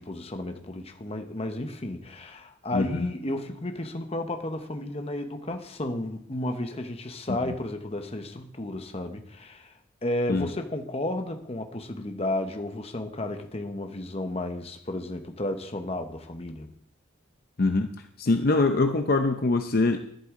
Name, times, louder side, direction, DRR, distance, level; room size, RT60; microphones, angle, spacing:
voice 1, 0.0-9.7 10.0-16.7, left 1 dB, 30° left, 6 dB, 1.0 m, -33 dB
voice 2, 2.7-3.1 7.4-7.5 10.3-10.5 17.6-17.9 18.2-20.0, left 3 dB, 50° left, 6 dB, 0.6 m, -23 dB
11.5 x 11.0 x 3.8 m, 0.69 s
head